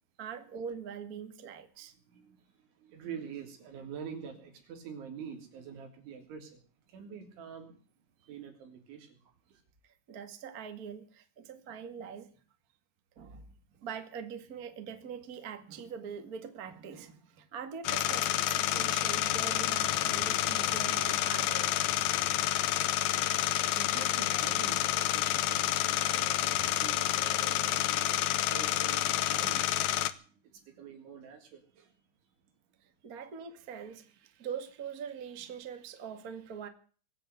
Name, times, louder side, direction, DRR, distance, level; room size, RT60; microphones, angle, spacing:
voice 1, 0.2-1.9 9.8-12.3 13.1-13.5 13.7-21.8 32.8-36.7, right 7 dB, 65° right, 0.8 m, -43 dB
voice 2, 2.1-6.6 6.9-7.7 8.2-9.6 23.7-29.8 30.1-31.9, right 7 dB, 85° right, 5.6 m, -46 dB
sound 1, 17.8-30.1, left 13 dB, 75° left, 2.3 m, -29 dB
21.5 x 8.4 x 7.9 m
omnidirectional pair, 5.2 m